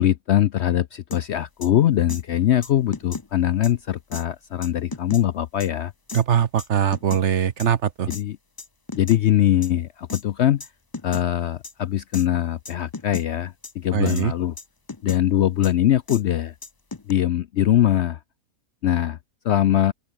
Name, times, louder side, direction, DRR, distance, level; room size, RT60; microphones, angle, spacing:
voice 1, 0.0-5.9 8.1-8.4 8.9-10.7 11.0-14.5 15.0-16.5 17.1-18.2 18.8-19.2 19.4-19.9, left 11 dB, 65° left, 0.7 m, -22 dB
sound 1, 1.1-1.2 1.6-1.7 2.1-2.2 2.6-3.3 3.6-3.7 4.1-4.2 4.6-5.2 5.6-5.7 6.1-6.2 6.6-7.2 7.6-7.7 8.1-8.2 8.6-9.2 9.6-9.7 10.1-10.2 10.6-10.7 10.9-11.3 11.6-11.7 12.1-12.3 12.7-13.3 13.6-13.7 14.1-14.2 14.6-15.2 15.6-15.7 16.1-16.2 16.6-17.1, left 3 dB, 20° left, 0.7 m, -35 dB
voice 2, 6.1-8.1 13.9-14.3, right 8 dB, 55° right, 1.1 m, -21 dB
open air
omnidirectional pair, 1.5 m